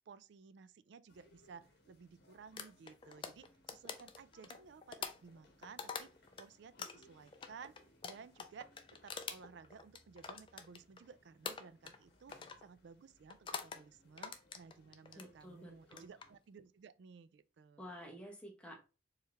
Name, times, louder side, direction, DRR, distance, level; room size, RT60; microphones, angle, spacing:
voice 1, 0.1-6.1 6.4-7.8 8.0-8.8 9.0-17.9, right 6 dB, 65° right, 0.3 m, -56 dB
sound 1, 1.1-16.4, left 1 dB, 55° left, 1.1 m, -68 dB
sound 2, 2.6-6.4 6.8-11.1 11.4-12.0 12.3-12.6 13.3-13.8 14.2-15.3 15.8-16.3, left 5 dB, 25° left, 0.4 m, -45 dB
voice 2, 15.1-16.1 17.8-18.8, equal, 5° left, 1.0 m, -51 dB
4.6 x 3.2 x 3.3 m
head